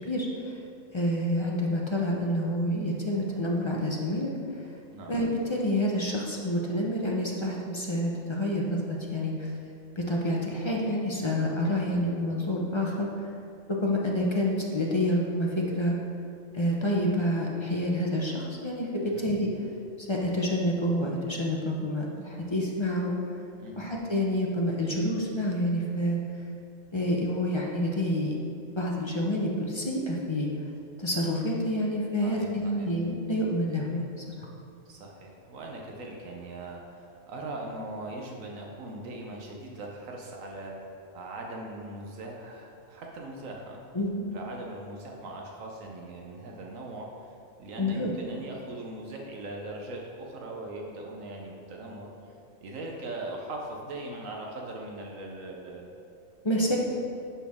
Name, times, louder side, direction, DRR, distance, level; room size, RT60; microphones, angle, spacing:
voice 1, 0.0-0.6 0.9-4.3 5.1-9.5 10.0-13.3 13.7-16.0 16.5-19.5 20.0-23.1 23.8-26.2 26.9-28.4 28.8-30.5 31.0-34.5 43.9-44.3 47.8-48.1 56.4-56.8, equal, 30° left, -2 dB, 0.5 m, -28 dB
voice 2, 32.2-32.9 34.9-43.8 44.3-47.1 47.6-52.1 52.6-55.9 56.5-56.8, right 2 dB, 80° right, 0 dB, 1.2 m, -40 dB
11.0 x 4.4 x 3.5 m, 2.5 s
omnidirectional pair, 1.4 m